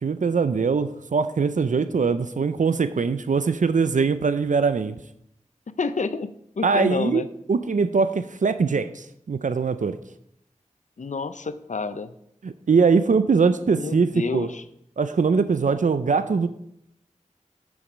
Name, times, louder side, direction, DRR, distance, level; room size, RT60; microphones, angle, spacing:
voice 1, 0.0-5.0 6.6-7.2 7.5-10.0 12.4-14.5 15.0-16.5, right 5 dB, 75° right, 12 dB, 0.5 m, -22 dB
voice 2, 5.8-6.3 6.6-7.3 11.0-12.1 13.7-14.6, left 4 dB, 70° left, 12 dB, 0.6 m, -29 dB
8.6 x 7.2 x 5.0 m, 0.75 s
wide cardioid pair, 50°, 13 cm